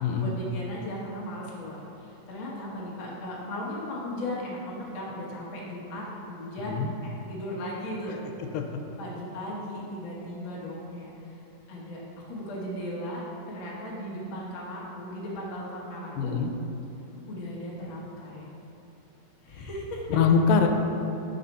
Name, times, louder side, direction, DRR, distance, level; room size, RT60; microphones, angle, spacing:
voice 1, 0.2-8.2 9.0-11.4 11.7-12.0 12.3-13.2 13.5-16.3 17.3-18.4 19.4-20.0, equal, 70° left, -5 dB, 1.2 m, -37 dB
voice 2, 6.6-6.9 8.5-8.6 16.2-16.5 20.1-20.7, left 6 dB, 85° left, 4 dB, 2.3 m, -23 dB
5.7 x 4.1 x 5.3 m, 2.9 s
omnidirectional pair, 4.0 m